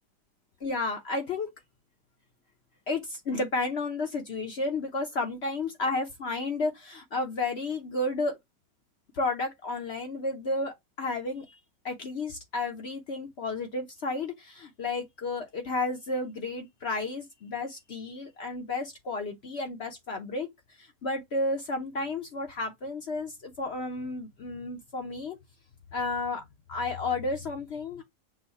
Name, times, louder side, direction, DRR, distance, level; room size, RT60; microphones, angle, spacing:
voice 1, 0.6-1.5 2.9-8.4 9.1-11.6 11.8-20.5 20.8-25.4 25.9-28.0, left 2 dB, 60° left, 0.7 m, -32 dB
6.2 x 2.1 x 4.0 m
omnidirectional pair, 1.9 m